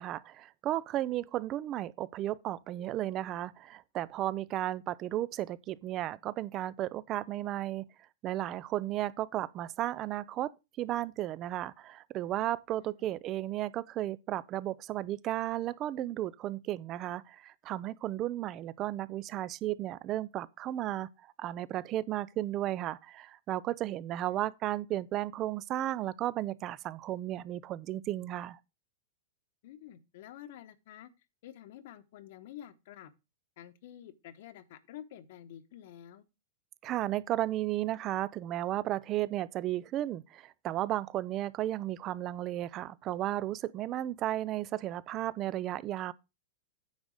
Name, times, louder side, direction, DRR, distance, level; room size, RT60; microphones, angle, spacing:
voice 1, 0.0-7.8 8.2-10.5 10.8-28.6 36.8-46.1, right 13 dB, 30° right, 0.4 m, -34 dB
voice 2, 29.6-31.1 31.4-33.1 33.6-36.2, left 11 dB, 60° left, 1.0 m, -49 dB
9.5 x 4.0 x 6.4 m
supercardioid pair, 150°, 0 cm